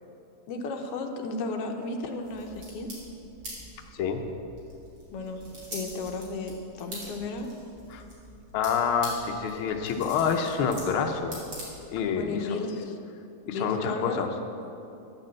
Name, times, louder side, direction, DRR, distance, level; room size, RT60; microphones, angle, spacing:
voice 1, 0.5-2.9 5.1-5.4 5.7-7.5 12.1-13.0 13.5-14.3, left 3 dB, 70° left, 3 dB, 1.6 m, -34 dB
sound 1, 2.2-12.2, right 1 dB, 40° right, 3.4 m, -45 dB
voice 2, 8.5-11.4 11.9-12.6 13.5-14.3, left 6 dB, 90° left, 4 dB, 1.1 m, -27 dB
10.5 x 6.7 x 7.5 m, 2.7 s
omnidirectional pair, 3.4 m